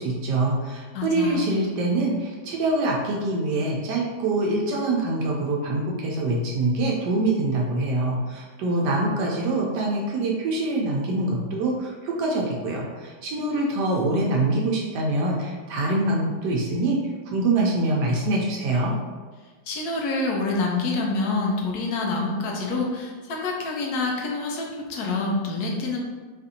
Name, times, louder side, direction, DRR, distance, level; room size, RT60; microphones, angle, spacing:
voice 1, 0.0-17.0 17.3-18.9, right 2 dB, 85° right, -2 dB, 1.2 m, -24 dB
voice 2, 0.9-1.4 19.7-26.0, left 3 dB, 75° left, 0 dB, 1.2 m, -27 dB
4.1 x 2.5 x 2.7 m, 1.4 s
omnidirectional pair, 1.8 m